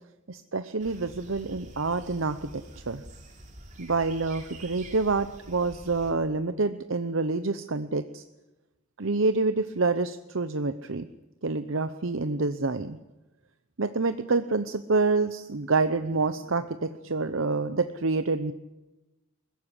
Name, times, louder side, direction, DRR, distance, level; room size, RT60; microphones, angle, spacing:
voice 1, 0.3-3.0 3.8-8.2 9.0-11.1 11.4-13.0 13.8-18.5, right 3 dB, 65° right, 10 dB, 0.8 m, -27 dB
sound 1, 0.8-6.1, right 1 dB, 35° right, 3.3 m, -47 dB
21.5 x 15.5 x 10.0 m, 1.0 s
head